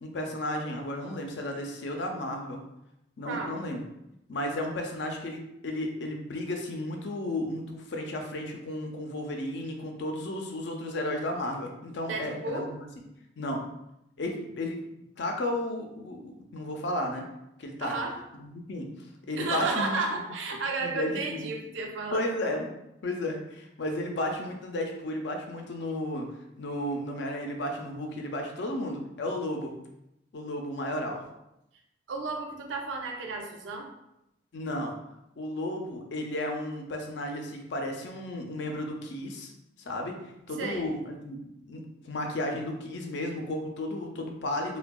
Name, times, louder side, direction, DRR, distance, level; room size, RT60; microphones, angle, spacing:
voice 1, 0.0-2.6 3.2-3.8 4.3-12.9 13.4-13.7 14.2-14.8 15.2-17.2 17.6-17.9 18.3-18.9 19.3-20.2 20.8-21.1 21.4-21.5 22.1-22.7 23.0-26.3 26.6-29.7 30.3-31.2 34.5-35.0 35.4-39.5 39.8-40.2 40.5-44.8, left 1 dB, 70° left, 2 dB, 0.5 m, -33 dB
voice 2, 3.3-3.6 12.1-12.7 17.8-18.2 19.4-22.3 32.1-33.9 40.6-40.9, right 3 dB, 85° right, 2 dB, 0.5 m, -32 dB
3.4 x 2.2 x 2.2 m, 0.85 s
head